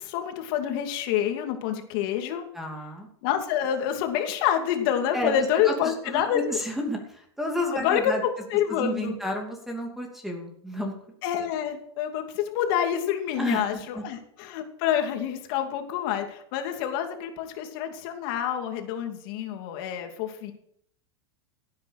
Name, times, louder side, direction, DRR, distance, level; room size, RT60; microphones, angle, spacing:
voice 1, 0.0-2.5 3.2-6.6 7.7-9.1 11.2-20.5, left 9 dB, 55° left, 5 dB, 2.7 m, -27 dB
voice 2, 2.5-3.1 5.1-8.2 8.7-10.9 13.4-14.0, equal, ahead, 2 dB, 2.7 m, -32 dB
15.5 x 9.4 x 6.6 m, 0.68 s
supercardioid pair, 150°, 15 cm